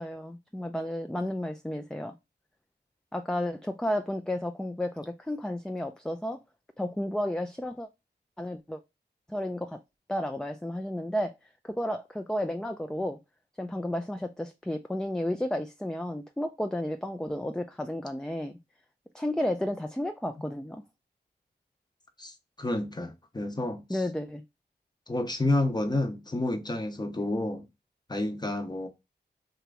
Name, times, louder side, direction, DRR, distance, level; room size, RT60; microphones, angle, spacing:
voice 1, 0.0-2.1 3.1-6.4 6.8-7.9 8.4-8.8 9.3-9.8 10.1-11.3 11.6-13.2 13.6-18.6 19.1-20.8 23.9-24.4, left 1 dB, 5° left, 0.3 m, -32 dB
voice 2, 22.2-24.0 25.1-27.7 28.1-28.9, left 2 dB, 25° left, 0.7 m, -30 dB
2.9 x 2.5 x 3.4 m
cardioid pair, 55°, 18 cm